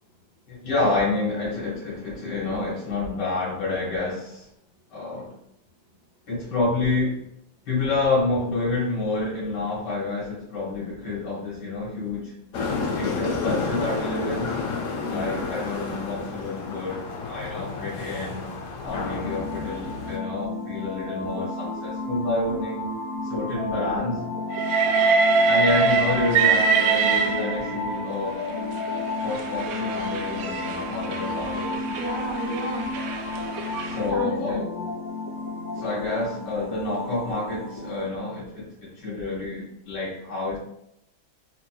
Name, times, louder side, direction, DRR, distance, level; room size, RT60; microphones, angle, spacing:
voice 1, 0.5-4.5 4.9-5.4 6.3-7.3 7.7-12.3 12.9-14.6 15.1-18.5 18.8-22.9 23.2-24.3 25.5-28.4 29.0-31.8 33.8-34.6 35.8-40.6, left 2 dB, 65° left, -8 dB, 2.0 m, -28 dB
sound 1, 12.5-20.2, left 4 dB, 80° left, 0.7 m, -31 dB
voice 2, 15.0-15.3 23.6-23.9 31.8-32.9 34.0-34.9, right 1 dB, 40° right, -5 dB, 0.5 m, -33 dB
sound 2, 18.9-38.1, left 3 dB, 30° left, 1.3 m, -32 dB
Train, 24.5-27.9 28.8-34.0, right 5 dB, 75° right, 1.1 m, -24 dB
4.2 x 2.9 x 2.2 m, 0.75 s
omnidirectional pair, 2.1 m